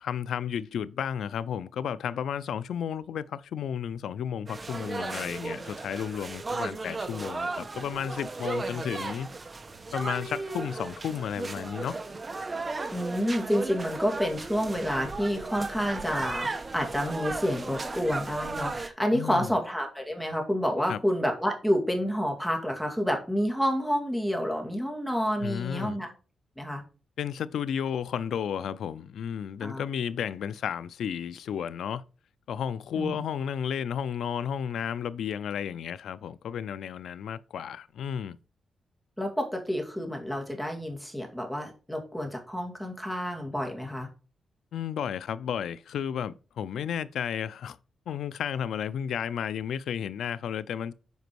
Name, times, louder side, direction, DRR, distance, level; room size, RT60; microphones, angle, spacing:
voice 1, 0.0-9.3 9.9-12.0 19.1-19.6 20.9-21.0 25.4-26.0 27.2-32.0 32.5-38.4 44.7-47.8 48.1-50.9, left 8 dB, 90° left, 0.4 m, -33 dB
sound 1, 4.5-18.9, right 3 dB, 30° right, 0.9 m, -35 dB
voice 2, 12.9-26.1 26.6-26.8 29.6-29.8 33.0-33.2 39.2-44.1, equal, 5° left, 2.2 m, -29 dB
8.0 x 5.1 x 4.6 m
wide cardioid pair, 130°, 0 cm